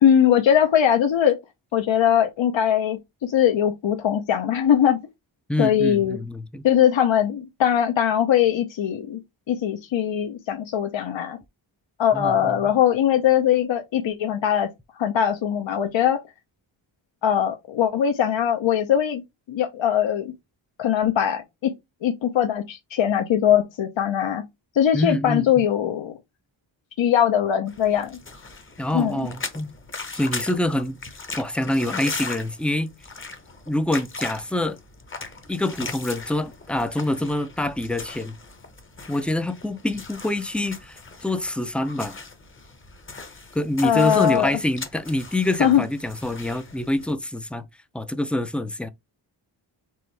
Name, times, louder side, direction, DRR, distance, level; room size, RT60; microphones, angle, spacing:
voice 1, 0.0-1.4 1.7-5.0 5.6-6.2 6.6-9.2 9.5-11.4 12.0-14.7 15.0-16.2 17.2-19.2 19.5-20.3 20.8-21.7 22.0-24.4 24.7-26.2 27.0-28.2 28.9-29.2 43.8-44.6 45.6-45.8, left 9 dB, 75° left, 0.8 m, -21 dB
voice 2, 5.5-6.7 12.1-12.7 24.9-25.7 28.8-29.7 30.1-31.0 31.4-32.9 33.7-34.8 35.5-38.3 39.1-42.2 43.5-47.7 47.9-48.9, left 1 dB, 5° left, 0.4 m, -26 dB
sound 1, 27.7-47.1, left 4 dB, 25° left, 0.8 m, -39 dB
4.7 x 3.4 x 3.2 m
wide cardioid pair, 175°, 47 cm